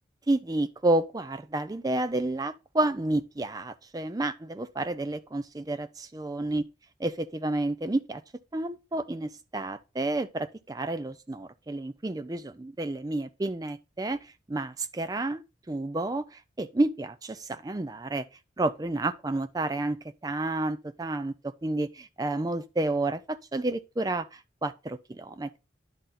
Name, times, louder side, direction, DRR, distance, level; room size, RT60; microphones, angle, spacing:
voice 1, 0.3-6.6 7.0-8.2 8.5-18.2 18.6-20.0 20.2-25.6, right 2 dB, 20° right, 0.4 m, -30 dB
10.0 x 3.9 x 4.1 m
head